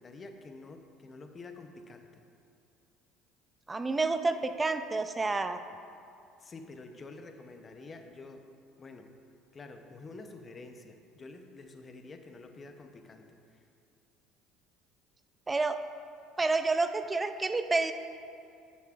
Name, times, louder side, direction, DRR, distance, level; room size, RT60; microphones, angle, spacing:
voice 1, 0.0-2.2 6.4-8.5 8.8-9.1 9.5-13.6, left 3 dB, 35° left, 6 dB, 0.7 m, -48 dB
voice 2, 3.7-5.6 15.5-15.8 16.4-17.9, right 3 dB, 20° right, 9 dB, 0.5 m, -29 dB
10.5 x 7.0 x 2.5 m, 2.5 s
hypercardioid pair, 75°, 0 cm